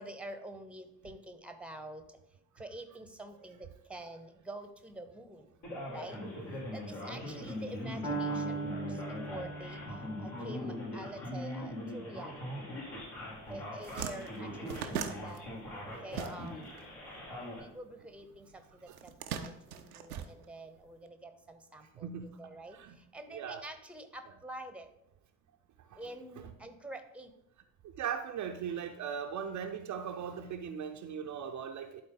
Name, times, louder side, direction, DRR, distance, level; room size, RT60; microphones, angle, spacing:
voice 1, 0.0-2.0 2.6-5.5 5.9-6.2 6.7-9.8 10.2-12.4 13.5-15.4 16.0-16.6 17.6-22.1 22.4-22.8 23.1-24.9 26.0-27.3, right 1 dB, 5° right, 9 dB, 0.9 m, -47 dB
Male speech man speaking, 5.6-17.6, left 1 dB, 60° left, 2.7 m, -41 dB
Piano, 8.0-16.0, right 3 dB, 85° left, 1.8 m, -42 dB
sound 1, 13.2-13.4 13.6-16.8 17.1-18.2 18.9-20.9, right 7 dB, 80° right, 0.6 m, -40 dB
voice 2, 14.4-15.0 18.9-19.0 20.2-20.3 22.0-22.4 22.7-23.0 23.3-23.6 24.2-24.3 25.9-26.1 26.3-26.5 27.8-32.0, right 7 dB, 40° right, 5 dB, 0.6 m, -40 dB
11.5 x 4.1 x 3.9 m, 0.84 s
figure-of-eight pair, 45°, 43 cm